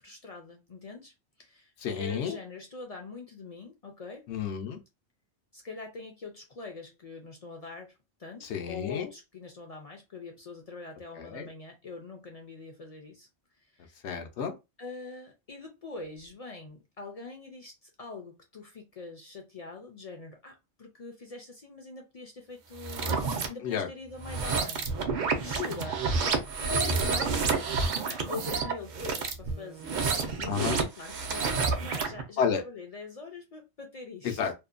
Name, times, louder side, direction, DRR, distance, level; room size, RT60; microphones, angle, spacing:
voice 1, 0.0-4.3 5.5-13.3 13.6-14.0 14.8-34.5, left 4 dB, 50° left, 0.4 m, -43 dB
voice 2, 1.8-2.4 4.3-4.8 8.4-9.1 11.2-11.5 14.0-14.6 23.6-23.9 30.5-30.8 32.4-32.6 34.2-34.5, left 7 dB, 90° left, 0.9 m, -31 dB
sound 1, 22.7-23.5 24.2-32.2, right 4 dB, 55° right, 0.6 m, -29 dB
2.7 x 2.1 x 2.4 m
omnidirectional pair, 1.1 m